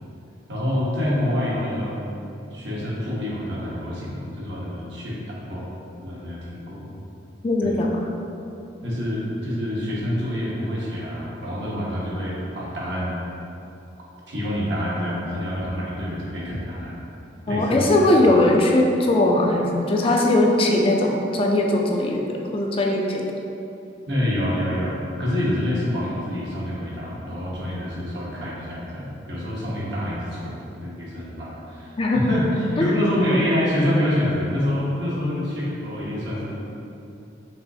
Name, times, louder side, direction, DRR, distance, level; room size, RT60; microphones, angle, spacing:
voice 1, 0.5-2.0 2.5-5.7 6.0-6.8 7.6-7.8 8.8-13.2 14.3-16.9 17.5-17.9 18.2-18.3 24.1-36.5, left 1 dB, 75° right, -6 dB, 1.1 m, -26 dB
voice 2, 7.4-8.0 17.5-23.2 32.0-32.3 32.8-32.9, left 1 dB, 30° left, 0 dB, 0.3 m, -20 dB
5.4 x 3.0 x 2.7 m, 2.8 s
head